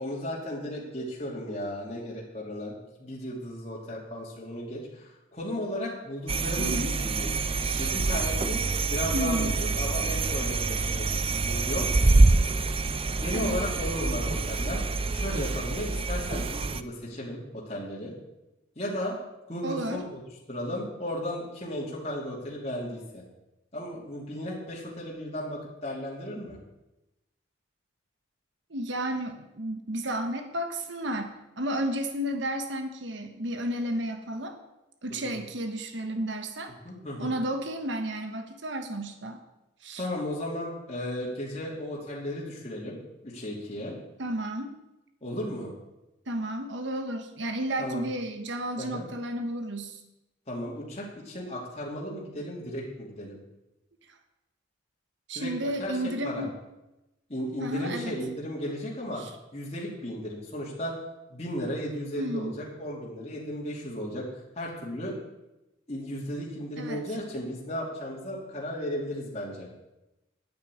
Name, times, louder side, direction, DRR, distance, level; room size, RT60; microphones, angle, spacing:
voice 1, 0.0-7.3 7.8-8.6 8.9-11.9 13.2-14.8 15.1-18.1 18.8-19.2 19.5-20.2 20.5-23.2 23.7-26.6 35.1-35.4 36.8-37.3 40.0-43.0 43.2-43.9 45.2-45.7 47.8-48.0 48.8-49.1 50.5-53.4 55.3-55.5 55.8-56.0 56.2-56.4 57.3-59.2 59.5-60.9 61.3-64.3 64.5-65.2 65.9-69.7, left 1 dB, 35° left, -4 dB, 2.9 m, -35 dB
sound 1, 6.3-16.8, right 3 dB, 30° right, 0.5 m, -26 dB
voice 2, 6.6-6.9 7.6-7.9 9.1-9.5 13.3-13.6 19.6-20.0 28.7-34.6 35.0-36.7 37.2-39.4 39.8-40.0 44.2-44.7 46.3-50.0 55.3-56.6 57.6-58.1 59.2-59.3 62.2-62.5 66.8-67.0, right 1 dB, 70° right, 6 dB, 1.3 m, -32 dB
9.8 x 8.6 x 8.5 m, 0.95 s
head